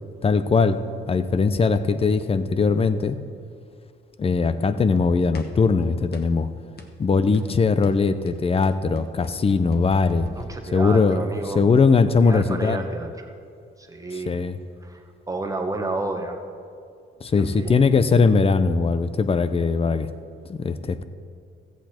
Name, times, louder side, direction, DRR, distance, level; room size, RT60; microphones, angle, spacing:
voice 1, 0.2-0.8 1.1-3.2 4.2-6.5 7.0-10.3 10.7-11.2 11.5-12.8 14.3-14.6 17.2-20.1 20.5-21.0, left 4 dB, 30° left, 12 dB, 0.6 m, -20 dB
sound 1, 5.3-5.7 6.1-6.4 6.8-7.0 7.3-7.5 7.8-11.2, left 4 dB, 50° left, 1.1 m, -42 dB
voice 2, 10.3-11.6 12.2-13.3 13.8-14.4 14.8-15.0 15.3-16.4 17.3-17.8, right 2 dB, 15° right, 4 dB, 1.3 m, -31 dB
14.5 x 8.3 x 4.4 m, 2.3 s
cardioid pair, 90°, 20 cm